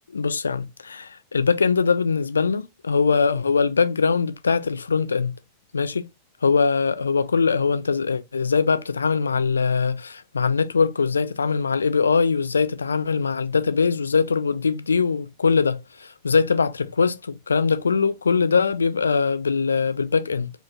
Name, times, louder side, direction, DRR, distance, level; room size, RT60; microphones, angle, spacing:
voice 1, 0.1-5.3 5.7-6.0 6.4-20.5, left 5 dB, 75° left, 0.4 m, -22 dB
4.8 x 2.9 x 2.2 m
figure-of-eight pair, 90°, 0 cm